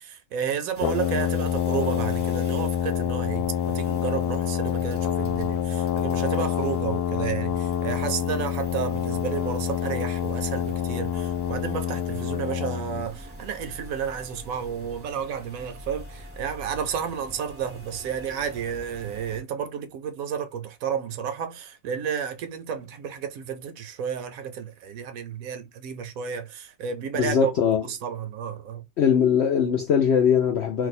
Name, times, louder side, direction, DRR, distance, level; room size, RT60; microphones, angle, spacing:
voice 1, 0.0-27.5 27.8-28.8, right 8 dB, 70° right, 0.9 m, -31 dB
sound 1, 0.7-19.4, right 1 dB, 10° right, 0.6 m, -45 dB
Brass instrument, 0.8-13.1, left 9 dB, 90° left, 1.1 m, -27 dB
voice 2, 27.1-27.8 29.0-30.9, left 7 dB, 70° left, 0.6 m, -21 dB
2.6 x 2.2 x 4.0 m
omnidirectional pair, 1.6 m